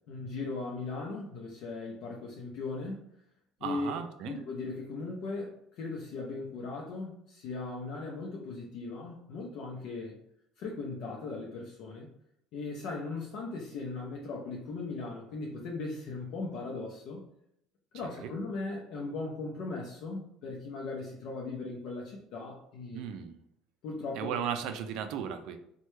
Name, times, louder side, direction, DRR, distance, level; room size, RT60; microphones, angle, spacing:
voice 1, 0.1-3.1 3.6-4.0 4.2-10.2 10.6-12.1 12.5-17.3 17.9-23.0 23.8-24.4, left 3 dB, 65° left, -2 dB, 0.5 m, -38 dB
voice 2, 3.6-4.4 18.2-18.3 22.9-23.4 24.2-25.6, right 8 dB, 70° right, 8 dB, 0.4 m, -35 dB
3.1 x 2.2 x 3.1 m, 0.73 s
cardioid pair, 140°, 0 cm